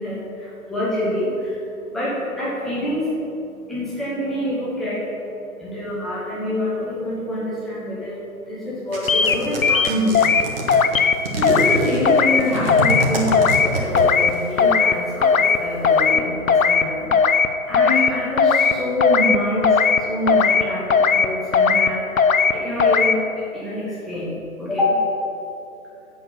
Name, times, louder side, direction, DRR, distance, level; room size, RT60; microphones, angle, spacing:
voice 1, 0.0-24.3 24.6-25.0, left 1 dB, ahead, -10 dB, 1.5 m, -26 dB
sound 1, 8.9-14.4, right 1 dB, 40° right, 1.7 m, -26 dB
sound 2, 9.1-9.4 9.6-10.4 10.7-11.2 11.4-11.8 12.1-12.4 12.7-13.0 13.3-13.7 14.0-14.3 14.6-14.9 15.2-15.6 15.8-16.2 16.5-16.8 17.1-17.5 17.7-18.1 18.4-18.7 19.0-19.4 19.6-20.0 20.3-20.6 20.9-21.3 21.5-21.9 22.2-22.5 22.8-23.1, left 5 dB, 65° left, 0.7 m, -17 dB
8.1 x 6.5 x 8.2 m, 2.7 s
figure-of-eight pair, 140°, 44 cm